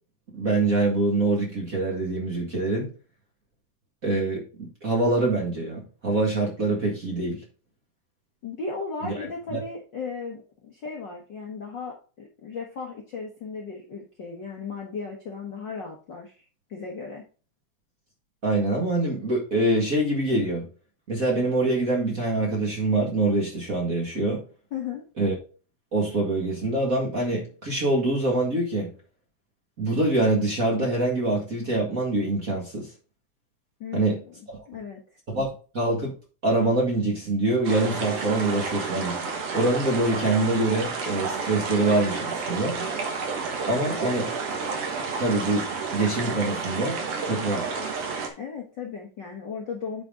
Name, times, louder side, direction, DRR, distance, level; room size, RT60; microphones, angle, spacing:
voice 1, 0.3-2.9 4.0-7.4 9.0-9.2 9.5-9.6 18.4-20.7 21.1-24.4 25.2-25.4 25.9-28.9 29.8-32.9 33.9-34.2 35.3-36.1 36.4-39.2 39.5-42.8 43.7-44.3 45.2-47.0 47.2-47.7, right 2 dB, 35° right, 1.6 m, -25 dB
voice 2, 8.4-16.3 16.7-17.2 24.7-25.0 33.8-34.1 34.7-35.0 48.4-50.0, left 5 dB, 55° left, 1.4 m, -36 dB
sound 1, 37.6-48.3, right 4 dB, 60° right, 2.3 m, -31 dB
8.9 x 4.9 x 3.7 m
omnidirectional pair, 3.5 m